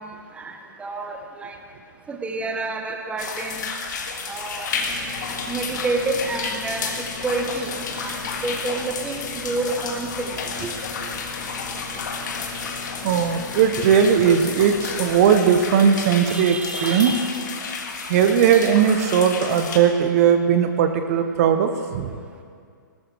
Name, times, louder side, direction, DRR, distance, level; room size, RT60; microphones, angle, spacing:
voice 1, 0.0-1.6 2.1-3.7 4.3-4.7 5.5-6.9 7.2-10.3 10.6-10.7 16.3-17.3, right 3 dB, 10° right, 4 dB, 1.1 m, -29 dB
sound 1, 3.2-19.8, left 5 dB, 60° left, 1.8 m, -31 dB
sound 2, 4.7-15.4, left 3 dB, 35° left, 2.9 m, -39 dB
voice 2, 13.0-17.1 18.1-22.1, right 7 dB, 45° right, 7 dB, 0.8 m, -18 dB
18.5 x 14.0 x 3.4 m, 2.1 s
figure-of-eight pair, 120°, 11 cm